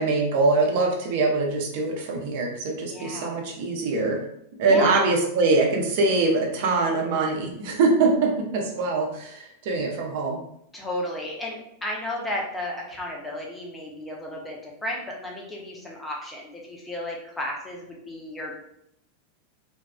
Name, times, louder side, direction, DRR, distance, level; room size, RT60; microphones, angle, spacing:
voice 1, 0.0-4.2 4.6-10.4, right 3 dB, 50° right, 1 dB, 0.6 m, -23 dB
voice 2, 2.9-3.4 4.7-5.1 10.7-18.6, left 1 dB, 10° left, -2 dB, 0.7 m, -33 dB
2.7 x 2.3 x 2.2 m, 0.75 s
figure-of-eight pair, 90°, 0 cm